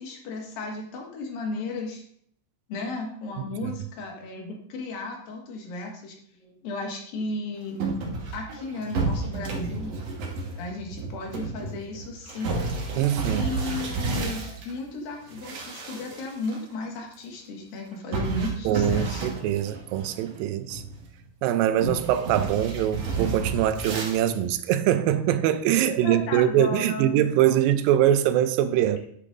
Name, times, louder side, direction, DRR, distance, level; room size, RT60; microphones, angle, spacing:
voice 1, 0.0-2.0 2.7-7.8 8.3-9.9 10.6-12.6 13.2-19.3 25.9-27.5, left 2 dB, 85° left, 3.4 m, -35 dB
sound 1, 7.8-14.7 15.2-16.6 16.8-16.9 18.1-20.4 20.7-21.2 21.8-24.2, right 3 dB, 55° right, 2.3 m, -31 dB
voice 2, 13.0-13.5 18.7-20.8 21.4-29.0, right 11 dB, 85° right, 2.4 m, -23 dB
10.5 x 8.4 x 2.6 m
omnidirectional pair, 4.0 m